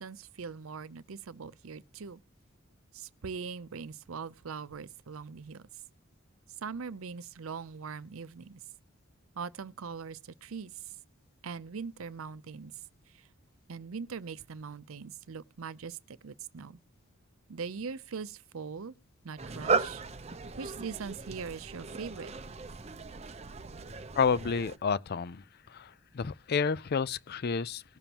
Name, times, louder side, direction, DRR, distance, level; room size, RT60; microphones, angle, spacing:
voice 1, 0.0-2.2 2.9-5.7 6.6-8.6 9.4-10.9 11.4-12.7 13.1-13.3 13.7-16.8 17.5-18.9 19.2-20.0 20.6-22.3, right 5 dB, 75° right, 0.6 m, -41 dB
sound 1, 19.4-24.8, right 4 dB, 30° right, 0.7 m, -36 dB
voice 2, 24.1-27.8, left 5 dB, 50° left, 0.5 m, -30 dB
19.5 x 7.0 x 2.9 m
head